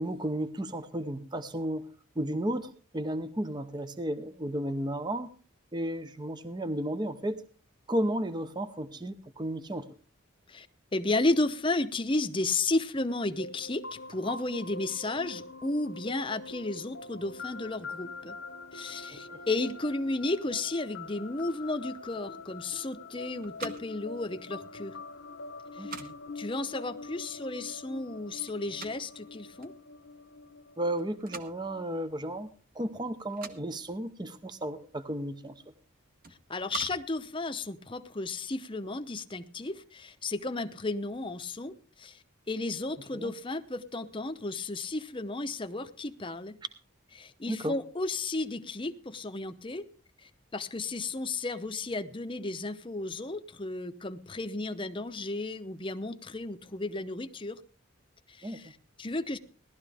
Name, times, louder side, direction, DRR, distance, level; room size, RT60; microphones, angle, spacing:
voice 1, 0.0-1.8 2.2-5.3 5.7-7.4 7.9-9.9 19.1-19.4 25.8-26.1 30.8-32.5 32.7-35.6 43.1-43.3 47.5-47.8 58.4-58.6, right 1 dB, 20° right, 11 dB, 0.6 m, -33 dB
voice 2, 10.9-18.4 18.7-25.0 25.7-26.1 26.4-29.7 36.5-42.2 42.5-46.6 47.2-49.8 50.2-57.6 58.3-59.4, left 2 dB, 25° left, 9 dB, 0.7 m, -33 dB
sound 1, 12.9-32.5, left 3 dB, 65° left, 1.0 m, -45 dB
sound 2, 23.0-38.3, right 6 dB, 45° right, 1.2 m, -49 dB
17.5 x 12.5 x 3.4 m, 0.38 s
head